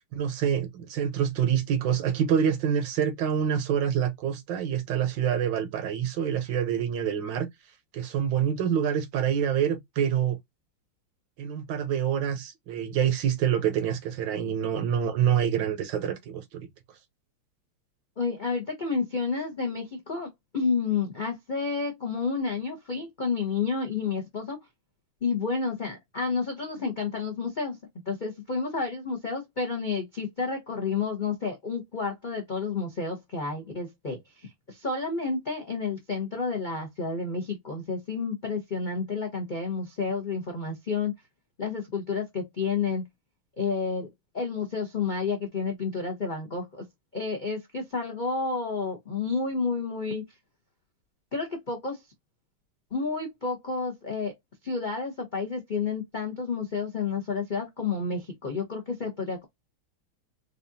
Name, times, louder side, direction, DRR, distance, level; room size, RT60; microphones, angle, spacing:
voice 1, 0.1-7.5 7.9-10.4 11.4-16.7, right 8 dB, 70° right, 1.3 m, -26 dB
voice 2, 18.2-24.6 25.2-27.8 28.1-41.1 41.6-43.0 43.6-44.1 44.3-46.8 47.1-50.2 51.3-52.0 52.9-54.3 54.6-59.4, left 4 dB, 55° left, 0.5 m, -30 dB
4.9 x 2.4 x 2.6 m
omnidirectional pair, 2.3 m